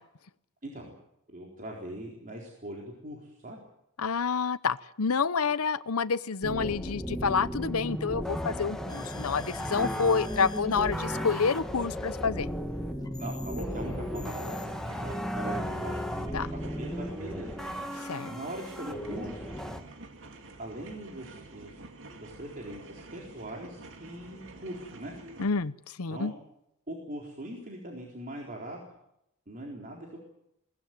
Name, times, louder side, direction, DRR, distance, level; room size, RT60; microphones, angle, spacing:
voice 1, 0.6-0.9 1.3-3.6 13.2-14.7 15.0-16.0 16.6-17.5 18.3-19.5 20.6-21.8 22.2-25.1 26.1-26.3 26.9-28.8 29.5-30.2, right 1 dB, 40° right, -1 dB, 4.1 m, -41 dB
voice 2, 4.0-12.5 16.3-16.5 17.9-18.3 25.4-26.3, left 5 dB, 75° left, 17 dB, 0.8 m, -28 dB
sound 1, 6.4-19.8, equal, ahead, 1.8 m, -35 dB
sound 2, 8.9-14.9, left 3 dB, 20° left, 1.6 m, -50 dB
sound 3, 14.5-25.5, right 2 dB, 60° right, 2.5 m, -49 dB
21.5 x 18.5 x 9.4 m, 0.81 s
head